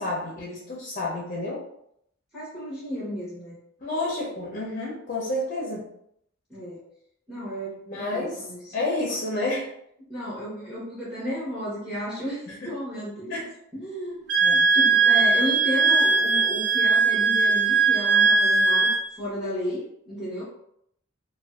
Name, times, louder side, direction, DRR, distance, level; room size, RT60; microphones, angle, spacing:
voice 1, 0.0-1.6 3.8-5.9 7.9-8.4 8.7-9.7 12.5-12.7 13.3-13.5 14.4-14.7, left 2 dB, 40° left, -4 dB, 0.5 m, -30 dB
voice 2, 2.3-3.6 6.5-6.8 7.3-8.7 10.1-13.4 13.7-18.9 19.2-20.4, equal, 5° right, -8 dB, 0.8 m, -33 dB
Wind instrument woodwind instrument, 14.3-19.0, right 4 dB, 60° right, 0.4 m, -20 dB
2.5 x 2.2 x 2.3 m, 0.73 s
head